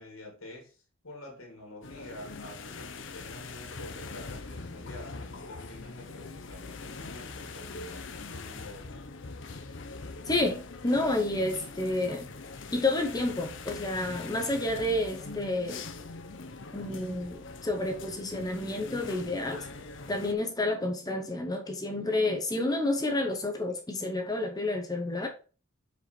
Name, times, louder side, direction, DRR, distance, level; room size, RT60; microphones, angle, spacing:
voice 1, 0.0-8.9, left 1 dB, 75° left, 2.2 m, -48 dB
sound 1, 1.8-20.3, left 3 dB, 55° left, 0.7 m, -42 dB
voice 2, 10.3-12.3 12.7-15.8 16.7-19.6 20.1-25.3, left 2 dB, 15° left, 0.8 m, -30 dB
5.1 x 4.9 x 4.3 m
head